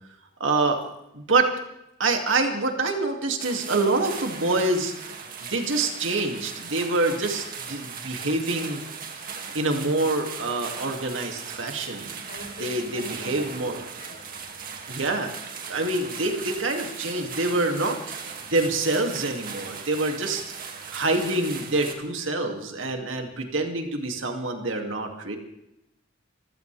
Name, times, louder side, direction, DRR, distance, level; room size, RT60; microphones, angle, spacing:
voice 1, 0.4-0.8 1.1-1.5 2.0-4.9 5.4-8.8 9.5-12.3 12.6-13.8 14.9-15.3 15.7-18.0 18.5-20.4 20.9-25.4, right 2 dB, 85° right, 3 dB, 2.6 m, -26 dB
sound 1, 3.4-21.9, right 6 dB, 50° right, 2.4 m, -38 dB
voice 2, 12.3-14.6 20.9-21.0, left 1 dB, 60° left, 0 dB, 4.2 m, -44 dB
27.0 x 15.5 x 3.5 m, 0.86 s
head